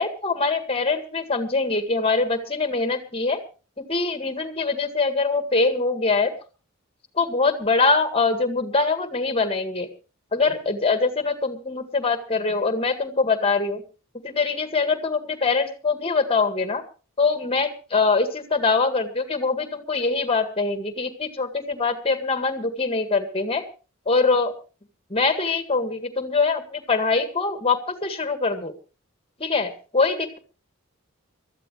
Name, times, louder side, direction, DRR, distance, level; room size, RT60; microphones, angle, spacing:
voice 1, 0.0-3.4 3.8-6.3 7.2-9.9 10.3-13.8 14.2-16.8 17.2-23.6 24.1-24.5 25.1-28.7 29.4-30.4, left 4 dB, 25° left, 9 dB, 1.9 m, -23 dB
23.0 x 14.0 x 3.2 m, 0.33 s
head